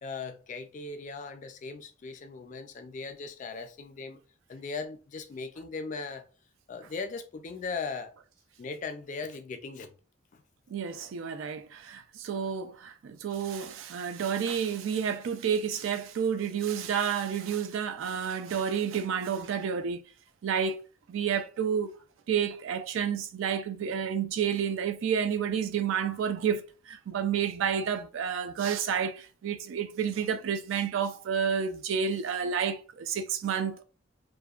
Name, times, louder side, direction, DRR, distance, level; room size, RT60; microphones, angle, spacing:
voice 1, 0.0-4.2 4.5-6.2 6.7-8.1 8.6-9.9 10.3-10.4, left 4 dB, 35° left, 0.3 m, -38 dB
voice 2, 10.7-20.0 20.4-20.8 21.1-21.9 22.3-33.8, right 7 dB, 70° right, 0.3 m, -30 dB
2.6 x 2.1 x 2.3 m
head